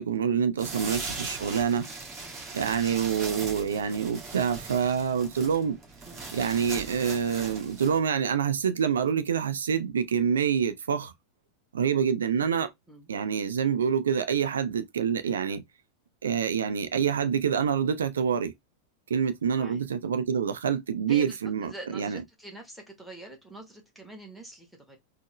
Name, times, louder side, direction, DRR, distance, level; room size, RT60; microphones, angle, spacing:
voice 1, 0.0-1.9 2.5-5.8 6.3-11.1 11.7-12.7 13.1-15.6 16.2-18.5 19.1-22.2, right 7 dB, 65° right, 0.5 m, -26 dB
sound 1, 0.6-8.0, right 3 dB, 25° right, 1.5 m, -39 dB
voice 2, 21.1-25.0, right 1 dB, ahead, 1.1 m, -45 dB
4.3 x 2.1 x 3.0 m
figure-of-eight pair, 90°, 0 cm